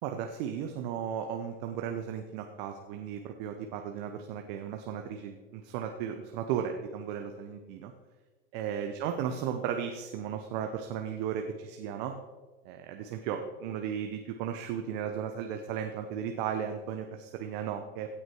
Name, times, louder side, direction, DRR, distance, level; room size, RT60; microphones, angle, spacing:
voice 1, 0.0-7.9 8.5-12.2 12.6-18.2, right 8 dB, 55° right, 5 dB, 1.1 m, -35 dB
16.5 x 6.2 x 4.7 m, 1.3 s
hypercardioid pair, 100°, 29 cm